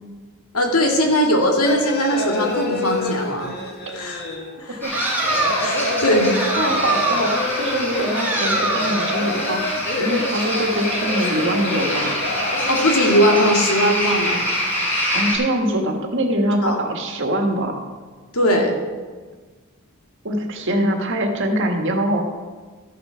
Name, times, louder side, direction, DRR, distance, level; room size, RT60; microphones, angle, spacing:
voice 1, 0.5-3.5 3.9-4.2 4.6-5.1 5.6-6.4 12.7-14.4 16.6-16.8 18.3-18.7, equal, 80° left, 1 dB, 2.1 m, -19 dB
sound 1, 1.6-13.7, left 2 dB, 45° left, 1.5 m, -27 dB
sound 2, 4.8-15.4, equal, 10° left, 3.7 m, -25 dB
sound 3, 4.9-5.8 6.3-7.6 8.1-9.2, right 2 dB, 10° right, 1.6 m, -24 dB
voice 2, 6.6-9.6 10.0-12.2 15.1-17.8 20.2-22.2, right 1 dB, 60° right, 3 dB, 1.7 m, -23 dB
13.0 x 8.4 x 5.8 m, 1.4 s
head